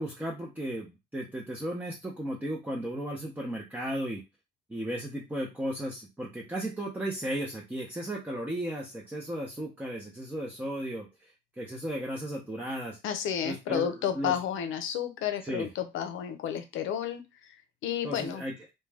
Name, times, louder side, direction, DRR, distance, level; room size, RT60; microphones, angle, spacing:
voice 1, 0.0-4.2 4.7-13.0 13.4-14.3 15.4-15.7 18.0-18.5, right 1 dB, 10° right, -1 dB, 0.6 m, -35 dB
voice 2, 13.0-17.6 17.8-18.4, left 9 dB, 80° left, 8 dB, 0.6 m, -32 dB
2.3 x 2.2 x 3.3 m, 0.25 s
cardioid pair, 90°, 20 cm